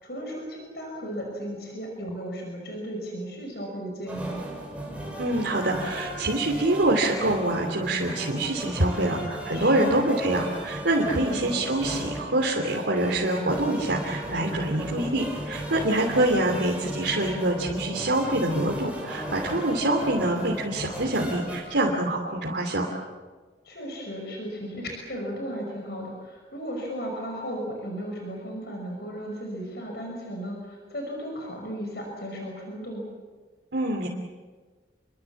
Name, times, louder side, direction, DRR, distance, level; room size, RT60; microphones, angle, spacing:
voice 1, 0.0-4.5 9.5-10.0 11.1-11.5 23.6-33.1, equal, 65° left, 1 dB, 5.8 m, -35 dB
sound 1, 4.1-21.6, right 1 dB, 10° right, 6.1 m, -35 dB
voice 2, 5.2-22.9 33.7-34.1, right 1 dB, 90° right, -1 dB, 3.0 m, -25 dB
29.0 x 23.5 x 7.3 m, 1.4 s
head